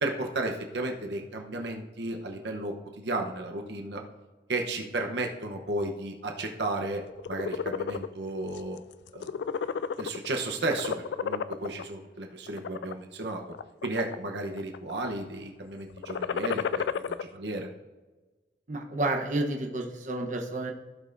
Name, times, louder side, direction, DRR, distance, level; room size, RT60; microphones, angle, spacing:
voice 1, 0.0-4.0 4.5-7.0 7.3-8.8 9.1-9.3 10.0-13.4 13.8-17.7, right 2 dB, 70° right, 3 dB, 0.9 m, -33 dB
sound 1, 7.1-8.1 8.6-8.8 9.1-10.4 10.7-11.8 12.5-12.9 13.5-14.3 14.6-15.1 15.9-17.2, left 6 dB, 70° left, 0.3 m, -31 dB
voice 2, 18.7-20.7, right 2 dB, 45° right, 2 dB, 0.9 m, -30 dB
16.0 x 5.4 x 2.6 m, 1.2 s
head